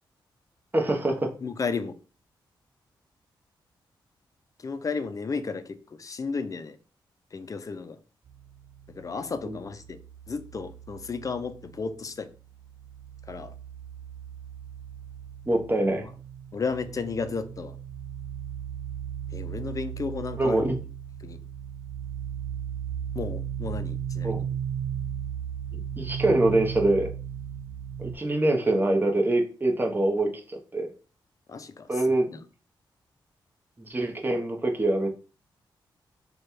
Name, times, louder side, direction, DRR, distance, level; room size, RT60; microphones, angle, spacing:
voice 1, 0.7-1.3 9.4-9.6 15.5-16.0 20.4-20.8 24.2-24.4 26.0-27.1 28.0-30.9 31.9-32.3 33.8-35.1, right 2 dB, 25° right, 1 dB, 0.9 m, -24 dB
voice 2, 1.4-1.9 4.6-6.8 7.3-8.0 8.9-10.0 10.3-12.3 13.3-13.5 16.5-17.7 19.3-20.6 21.2-21.4 23.2-24.5 31.5-32.4, left 4 dB, 40° left, 11 dB, 0.5 m, -33 dB
sound 1, 8.3-12.1 12.4-28.2, right 9 dB, 55° right, 0.4 m, -36 dB
3.2 x 2.3 x 4.3 m, 0.36 s
cardioid pair, 70°, 9 cm